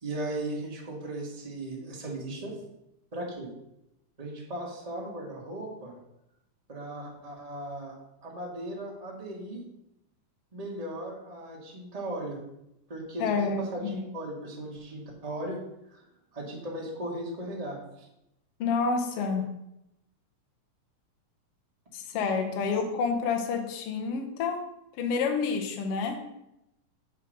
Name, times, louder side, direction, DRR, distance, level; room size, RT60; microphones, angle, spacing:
voice 1, 0.0-2.5 3.1-3.5 4.2-5.9 6.7-7.9 8.2-9.6 10.5-12.4 12.9-15.6 15.9-16.0 16.3-18.1, right 1 dB, 25° right, -3 dB, 0.7 m, -37 dB
voice 2, 13.2-13.6 13.9-14.0 18.6-19.4 21.9-24.6 25.0-26.2, left 5 dB, 60° left, 4 dB, 1.7 m, -28 dB
7.0 x 4.6 x 6.4 m, 0.85 s
omnidirectional pair, 3.7 m